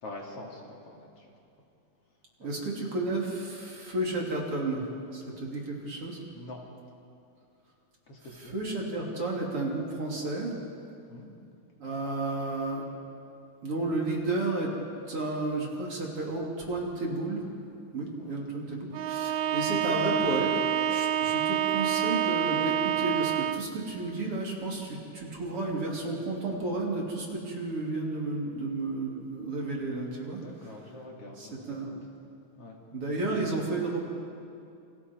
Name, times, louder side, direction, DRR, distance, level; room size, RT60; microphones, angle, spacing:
voice 1, 0.0-1.3 2.4-2.5 6.3-6.6 8.1-8.6 11.1-11.3 18.1-18.5 19.7-20.0 30.4-32.0 32.6-32.8, left 1 dB, 55° left, -1 dB, 3.6 m, -45 dB
voice 2, 2.4-4.8 5.1-6.2 8.3-10.5 11.8-12.9 13.6-14.7 15.1-17.5 17.9-20.5 20.9-30.7 31.4-32.0 32.9-34.0, right 2 dB, 50° right, -2 dB, 4.1 m, -32 dB
Bowed string instrument, 18.9-23.8, right 10 dB, 80° right, 2.1 m, -28 dB
29.5 x 27.5 x 4.7 m, 2.5 s
omnidirectional pair, 3.3 m